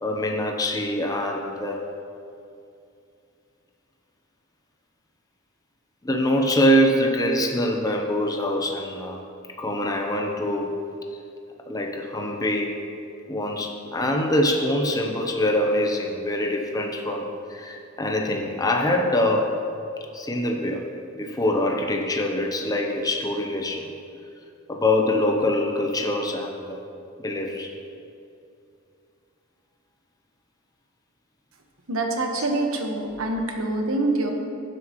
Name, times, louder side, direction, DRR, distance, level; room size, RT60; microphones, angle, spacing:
voice 1, 0.0-1.9 6.0-9.2 9.6-10.8 11.7-12.8 13.3-19.6 20.1-23.9 24.7-26.8 27.2-27.7 32.2-32.5, left 1 dB, 15° left, 2 dB, 0.7 m, -24 dB
voice 2, 31.9-34.3, right 2 dB, 80° right, 2 dB, 1.3 m, -25 dB
16.5 x 7.7 x 3.1 m, 2.6 s
head